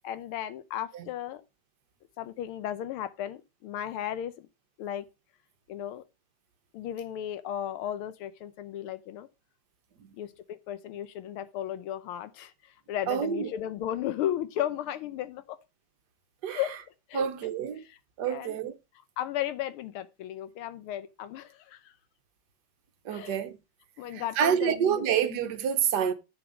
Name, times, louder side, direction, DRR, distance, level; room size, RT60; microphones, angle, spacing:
voice 1, 0.0-1.4 2.2-4.5 4.8-5.0 5.7-6.0 6.7-9.3 10.2-12.5 12.9-15.6 16.5-16.7 17.1-17.2 18.3-18.6 19.2-21.9 23.1-23.4 24.0-25.0, left 11 dB, 85° left, 1.6 m, -35 dB
voice 2, 13.1-13.5 16.4-16.7 17.1-17.8 18.2-18.7 23.0-23.6 24.1-26.1, right 8 dB, 60° right, 1.4 m, -28 dB
8.1 x 6.9 x 5.0 m
omnidirectional pair, 2.3 m